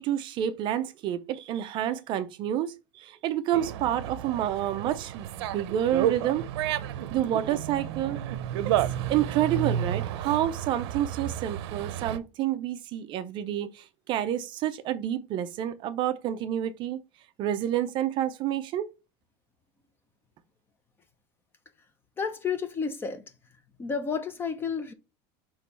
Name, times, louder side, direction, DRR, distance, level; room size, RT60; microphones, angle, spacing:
voice 1, 0.0-6.4 7.1-8.2 9.1-17.0 17.4-18.9, right 11 dB, 35° right, 0.5 m, -29 dB
Dog, 3.5-12.2, right 11 dB, 80° right, 0.7 m, -31 dB
voice 2, 22.2-23.3 23.8-24.9, left 6 dB, 15° left, 0.7 m, -31 dB
6.4 x 3.0 x 5.5 m
cardioid pair, 165°, 14 cm